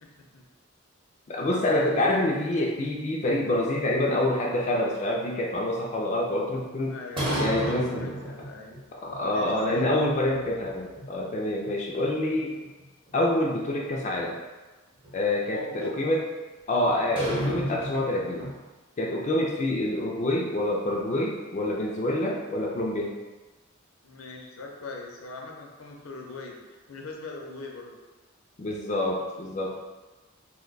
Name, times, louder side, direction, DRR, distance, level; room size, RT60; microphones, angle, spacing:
voice 1, 0.0-0.5 6.9-8.7 9.3-9.9 15.5-15.9 24.0-27.9, left 3 dB, 80° left, 0 dB, 0.6 m, -41 dB
voice 2, 1.3-7.0 7.4-8.1 9.0-12.6 13.1-14.4 15.1-16.2 16.7-18.4 19.0-23.1 28.6-29.9, left 1 dB, 35° left, -3 dB, 0.3 m, -27 dB
sound 1, 3.3-4.6 7.2-8.8 9.1-9.2 9.7-10.7 11.0-11.1 11.6-11.7 12.1-13.5 15.0-15.1 16.9-18.6, equal, 25° right, 0.7 m, -33 dB
2.9 x 2.2 x 3.8 m, 1.2 s
head